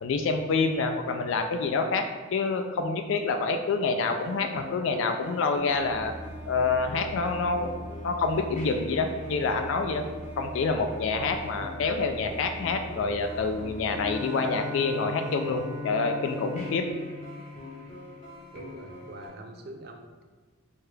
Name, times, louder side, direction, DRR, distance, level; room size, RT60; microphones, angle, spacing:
voice 1, 0.0-6.1 6.5-7.7 8.0-10.0 10.4-16.8, left 4 dB, 65° left, 5 dB, 0.3 m, -27 dB
sound 1, 4.1-19.3, left 3 dB, 35° left, 0.7 m, -45 dB
sound 2, 5.7-14.0, equal, 90° right, 0.7 m, -41 dB
Bowed string instrument, 13.9-18.6, left 3 dB, 20° right, 1.0 m, -38 dB
voice 2, 18.5-20.2, right 2 dB, 50° right, 4 dB, 0.4 m, -44 dB
4.5 x 2.3 x 3.2 m, 1.4 s
head